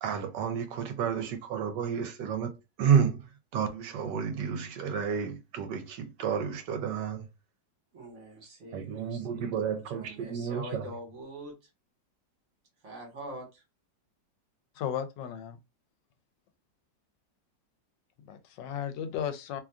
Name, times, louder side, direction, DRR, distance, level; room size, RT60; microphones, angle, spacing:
voice 1, 0.0-7.3 8.7-10.9, right 7 dB, 75° right, 1.2 m, -30 dB
voice 2, 7.9-11.7 12.8-13.6, right 1 dB, 45° right, 1.5 m, -44 dB
voice 3, 14.7-15.6 18.2-19.6, left 9 dB, 85° left, 1.2 m, -35 dB
3.0 x 2.4 x 2.3 m
omnidirectional pair, 1.9 m